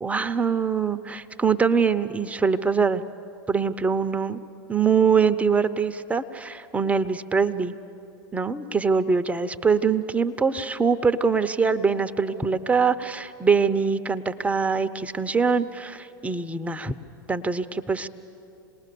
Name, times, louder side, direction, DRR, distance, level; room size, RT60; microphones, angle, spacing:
voice 1, 0.0-3.0 3.5-4.4 4.7-7.7 8.3-16.9 17.3-18.1, right 5 dB, 10° right, 11 dB, 0.7 m, -23 dB
27.0 x 20.0 x 6.9 m, 2.8 s
hypercardioid pair, 95°, 12 cm